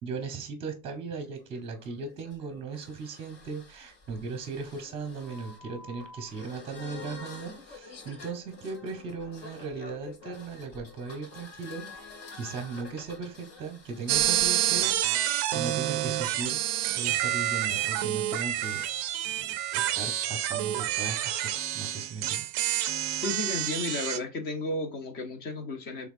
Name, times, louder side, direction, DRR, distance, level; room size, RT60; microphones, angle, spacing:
voice 1, 0.0-12.1 12.3-16.6 16.9-18.8 19.2-22.5, right 4 dB, 15° right, 0.8 m, -38 dB
sound 1, 1.1-14.9, left 3 dB, 60° left, 2.3 m, -48 dB
sound 2, 14.1-24.2, right 13 dB, 40° right, 0.4 m, -28 dB
voice 2, 23.2-26.1, left 2 dB, 30° left, 0.6 m, -33 dB
5.6 x 3.4 x 2.5 m
cardioid pair, 180°, 35 cm